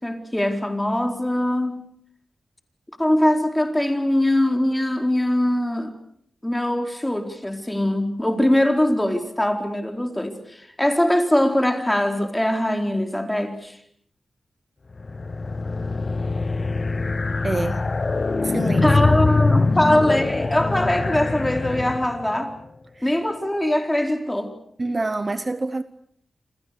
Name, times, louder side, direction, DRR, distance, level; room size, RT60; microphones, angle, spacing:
voice 1, 0.0-1.9 3.0-6.0 6.4-13.8 18.8-22.5 23.0-24.5, left 1 dB, 10° left, 4.3 m, -22 dB
sound 1, 14.9-22.4, left 3 dB, 40° left, 1.1 m, -23 dB
voice 2, 17.4-17.8 18.4-18.9 22.9-23.1 24.8-25.8, right 2 dB, 35° right, 1.0 m, -26 dB
28.5 x 26.0 x 6.8 m
wide cardioid pair, 85°, 0 cm